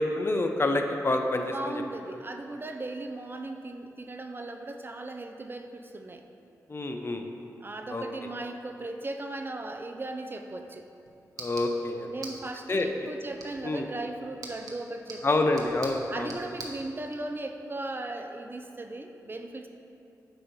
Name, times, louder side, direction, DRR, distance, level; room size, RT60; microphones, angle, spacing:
voice 1, 0.0-1.8 6.7-7.3 7.9-8.0 11.4-12.1 12.7-12.9 13.6-13.9 15.2-16.3, left 2 dB, 40° left, 5 dB, 0.6 m, -27 dB
voice 2, 1.4-6.2 7.6-10.9 12.0-15.7 16.1-19.7, right 2 dB, 35° right, 5 dB, 0.5 m, -37 dB
sound 1, 10.6-17.2, right 2 dB, 65° right, 0.9 m, -46 dB
8.6 x 2.9 x 5.4 m, 2.7 s
cardioid pair, 50°, 7 cm